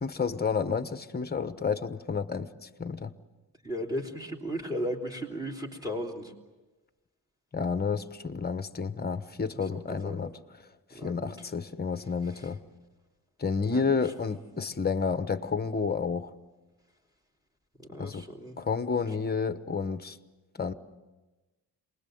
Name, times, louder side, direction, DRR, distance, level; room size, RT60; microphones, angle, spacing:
voice 1, 0.0-2.5 2.8-3.1 7.5-10.3 11.0-12.6 13.4-16.3 18.0-18.3 18.6-20.2 20.6-20.7, left 5 dB, 25° left, 1.1 m, -30 dB
voice 2, 3.6-6.3 9.7-10.2 10.9-11.5 13.6-13.8 17.8-18.6, equal, 10° right, 3.3 m, -36 dB
27.5 x 21.0 x 7.9 m
wide cardioid pair, 125°, 41 cm